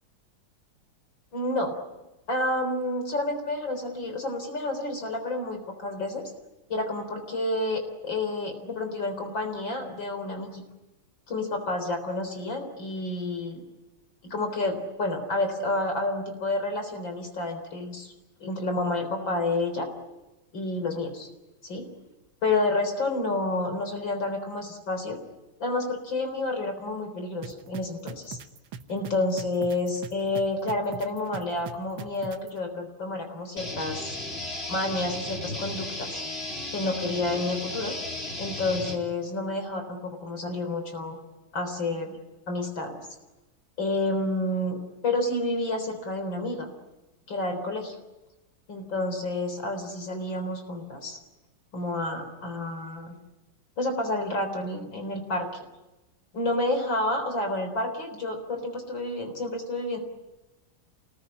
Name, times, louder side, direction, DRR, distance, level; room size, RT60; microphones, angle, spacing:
voice 1, 1.3-1.7 2.3-6.2 6.7-10.6 11.3-13.6 14.2-18.1 18.4-19.9 20.5-21.3 21.6-21.9 22.4-25.2 25.6-28.4 28.9-34.2 34.7-36.2 36.7-38.0 38.4-41.2 41.5-42.2 42.5-43.0 43.8-46.7 47.3-47.9 48.7-51.2 51.7-53.2 53.8-55.5 56.3-60.0, left 2 dB, 65° left, 6 dB, 4.6 m, -29 dB
sound 1, 27.4-32.5, right 7 dB, 70° right, 1.9 m, -40 dB
sound 2, 33.6-39.0, left 1 dB, 30° left, 4.2 m, -35 dB
28.5 x 21.0 x 10.0 m, 1.0 s
omnidirectional pair, 2.3 m